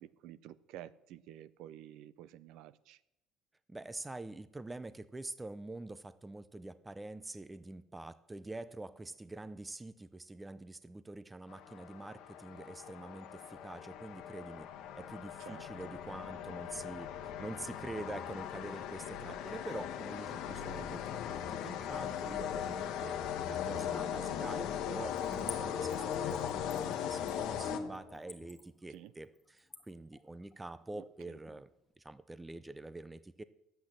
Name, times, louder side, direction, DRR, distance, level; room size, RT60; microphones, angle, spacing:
voice 1, 0.0-3.0 15.4-15.7 28.9-29.1 30.9-31.0, right 12 dB, 65° right, 17 dB, 0.5 m, -51 dB
voice 2, 3.7-14.7 14.9-17.1 17.4-23.2 23.5-31.7 32.0-33.4, right 2 dB, 10° right, 14 dB, 0.4 m, -46 dB
sound 1, 11.5-28.3, left 9 dB, 60° left, 1.0 m, -39 dB
Splash splatter / Trickle dribble, 25.2-31.6 31.9-32.0, left 3 dB, 10° left, 1.1 m, -50 dB
10.5 x 8.1 x 7.4 m, 0.87 s
cardioid pair, 175°, 0 cm